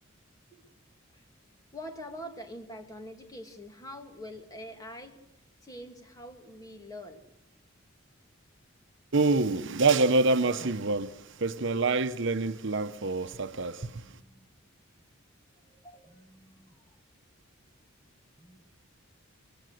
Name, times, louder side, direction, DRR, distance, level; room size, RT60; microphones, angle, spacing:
voice 1, 1.7-5.2 5.6-7.2 13.8-14.5 15.6-17.0 18.4-18.6, equal, 15° left, 2.6 m, -45 dB
voice 2, 9.1-14.2, right 3 dB, 60° right, 0.9 m, -26 dB
26.5 x 22.5 x 6.6 m
head